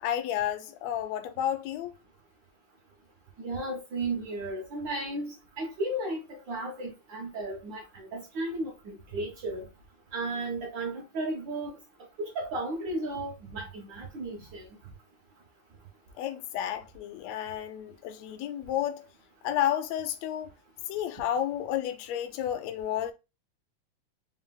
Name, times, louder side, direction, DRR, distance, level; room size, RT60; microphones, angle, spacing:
voice 1, 0.0-2.0 16.2-19.0 19.4-20.5 20.9-23.1, left 10 dB, 80° left, 1.6 m, -31 dB
voice 2, 3.4-9.7 10.1-11.7 12.2-14.7, right 2 dB, 80° right, 1.0 m, -34 dB
4.6 x 3.8 x 2.2 m
omnidirectional pair, 3.5 m